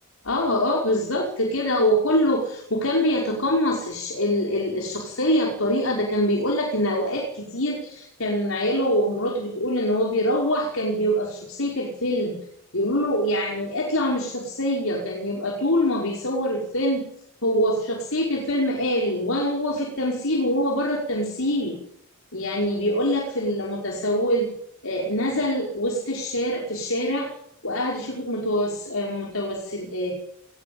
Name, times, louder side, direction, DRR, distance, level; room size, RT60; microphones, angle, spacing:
voice 1, 0.3-12.4 12.7-17.1 17.4-21.8 22.3-24.5 24.8-27.3 27.6-30.1, equal, 75° left, 0 dB, 5.5 m, -24 dB
21.0 x 19.5 x 9.0 m, 0.71 s
head